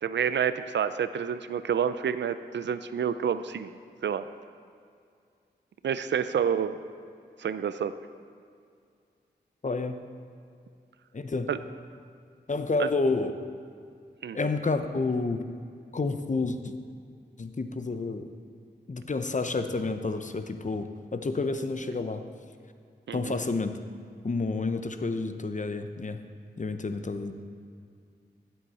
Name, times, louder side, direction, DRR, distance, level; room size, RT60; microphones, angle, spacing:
voice 1, 0.0-3.7 4.0-4.2 5.8-6.8 7.4-7.9 11.5-11.6 12.8-12.9 14.2-14.4 23.1-23.4, right 8 dB, 80° right, 12 dB, 0.5 m, -28 dB
voice 2, 9.6-10.0 11.1-11.5 12.5-13.3 14.3-15.4 15.9-16.7 17.4-18.3 18.9-22.2 23.1-23.7 24.2-26.2 26.6-27.3, left 3 dB, 45° left, 8 dB, 0.9 m, -29 dB
15.5 x 8.0 x 4.3 m, 2.3 s
cardioid pair, 45°, 18 cm